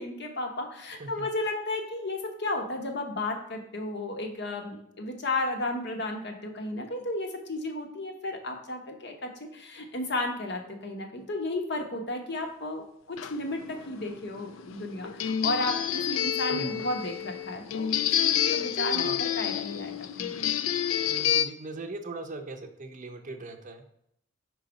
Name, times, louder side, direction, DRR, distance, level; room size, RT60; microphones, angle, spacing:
voice 1, 0.0-17.9 18.2-20.4, left 2 dB, 60° left, 3 dB, 0.9 m, -33 dB
sound 1, 13.2-21.4, left 10 dB, 80° left, 0.4 m, -29 dB
voice 2, 16.5-16.8 18.9-19.2 21.0-23.9, right 2 dB, 40° right, 6 dB, 0.6 m, -40 dB
4.8 x 3.9 x 5.0 m, 0.72 s
head